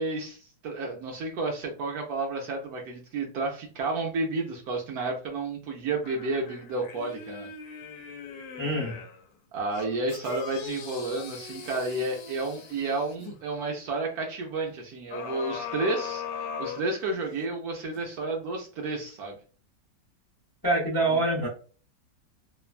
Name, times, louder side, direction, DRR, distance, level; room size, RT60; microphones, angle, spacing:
voice 1, 0.0-7.5 9.5-19.4 21.1-21.2, right 3 dB, 70° right, 1 dB, 1.0 m, -31 dB
sound 1, 6.0-9.2 9.7-13.4 15.1-17.4 18.0-18.1, left 6 dB, 80° left, 1.2 m, -39 dB
voice 2, 8.6-9.0 20.6-21.5, right 2 dB, 20° left, -5 dB, 0.5 m, -25 dB
3.0 x 2.1 x 2.4 m, 0.39 s
omnidirectional pair, 1.9 m